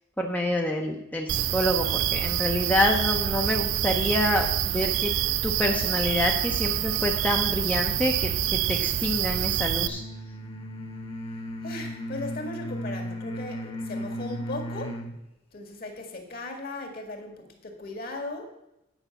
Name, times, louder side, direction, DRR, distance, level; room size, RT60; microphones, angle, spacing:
voice 1, 0.2-5.1 5.4-10.0, left 1 dB, 10° left, 1 dB, 0.7 m, -27 dB
sound 1, 1.3-9.9, right 11 dB, 75° right, 0.4 m, -26 dB
sound 2, 7.7-15.1, equal, 30° left, 1.3 m, -36 dB
voice 2, 11.6-15.0 15.5-18.5, left 2 dB, 50° left, 3 dB, 1.8 m, -37 dB
9.1 x 5.5 x 7.1 m, 0.89 s
head